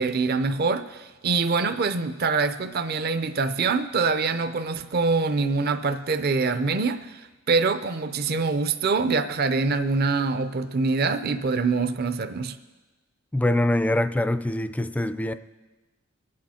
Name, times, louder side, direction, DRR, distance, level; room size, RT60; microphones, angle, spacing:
voice 1, 0.0-12.6, right 4 dB, 50° right, 0.6 m, -24 dB
voice 2, 13.3-15.3, left 1 dB, 5° left, 0.4 m, -24 dB
23.5 x 8.5 x 4.3 m
head